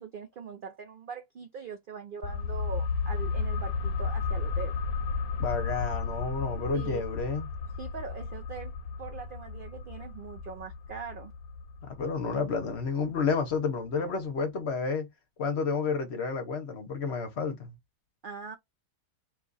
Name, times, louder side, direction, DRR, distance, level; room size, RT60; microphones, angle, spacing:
voice 1, 0.0-4.8 6.7-7.0 7.8-8.7 9.0-11.3 18.2-18.6, right 6 dB, 65° right, 0.5 m, -41 dB
sound 1, 2.2-13.6 13.9-14.0, left 4 dB, 85° left, 1.0 m, -34 dB
voice 2, 5.4-7.5 11.8-15.1 15.4-17.7, left 5 dB, 55° left, 1.0 m, -30 dB
2.9 x 2.4 x 3.8 m
omnidirectional pair, 1.5 m